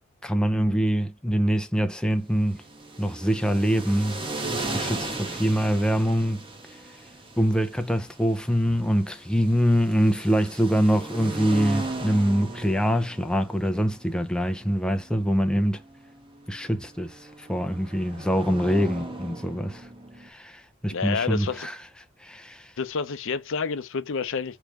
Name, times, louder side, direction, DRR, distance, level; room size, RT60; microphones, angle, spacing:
voice 1, 0.2-2.6 3.0-6.4 7.4-15.8 16.5-19.9 20.2-21.8 22.2-22.7, equal, 5° left, 0.4 m, -24 dB
sound 1, 2.4-20.3, right 2 dB, 25° right, 1.1 m, -37 dB
voice 2, 20.9-21.7 22.8-24.6, left 5 dB, 65° left, 0.6 m, -29 dB
3.4 x 3.0 x 4.8 m
head